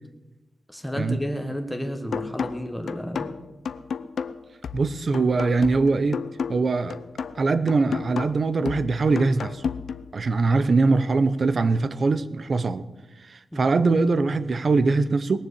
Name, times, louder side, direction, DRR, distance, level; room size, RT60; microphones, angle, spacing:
voice 1, 0.7-3.3 13.5-13.7, equal, ahead, 1.4 m, -31 dB
sound 1, 2.1-10.1, left 6 dB, 80° left, 0.6 m, -33 dB
voice 2, 4.7-6.2 6.5-7.0 7.3-9.6 10.1-12.9 13.3-15.5, right 3 dB, 45° right, 0.7 m, -22 dB
19.5 x 7.3 x 8.2 m
wide cardioid pair, 170°, 0 cm